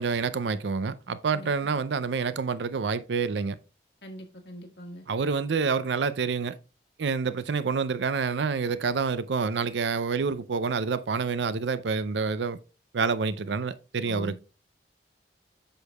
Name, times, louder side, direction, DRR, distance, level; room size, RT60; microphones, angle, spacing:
voice 1, 0.0-3.6 5.1-6.5 7.0-12.6 12.9-14.4, right 5 dB, 80° right, 0.5 m, -28 dB
voice 2, 4.0-5.0 14.1-14.4, equal, 70° left, 1.5 m, -42 dB
7.9 x 6.5 x 2.3 m
head